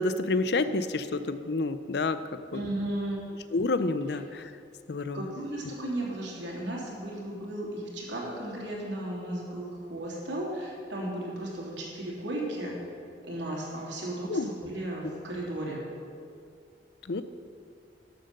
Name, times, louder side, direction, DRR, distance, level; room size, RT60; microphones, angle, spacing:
voice 1, 0.0-2.2 2.5-2.6 3.5-4.5 4.9-5.3 14.3-14.5 17.1-17.2, left 3 dB, 65° left, 12 dB, 0.6 m, -29 dB
voice 2, 2.5-3.2 5.1-12.8 13.2-15.8, right 1 dB, 80° right, -3 dB, 3.0 m, -35 dB
12.0 x 7.7 x 6.6 m, 2.3 s
head